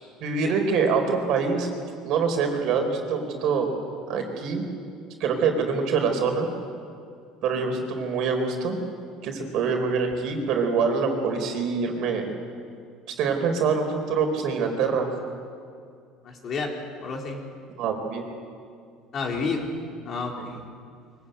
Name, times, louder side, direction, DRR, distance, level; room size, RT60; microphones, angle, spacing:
voice 1, 0.2-1.7 2.0-3.7 4.1-4.6 5.2-6.5 7.4-8.8 9.2-12.2 13.1-15.1 17.8-18.2, right 5 dB, 60° right, 4 dB, 4.3 m, -25 dB
voice 2, 16.2-16.7 17.0-17.4 19.1-19.7 20.0-20.7, left 4 dB, 40° left, 0 dB, 4.3 m, -30 dB
23.5 x 16.5 x 9.2 m, 2.3 s
cardioid pair, 120°, 0 cm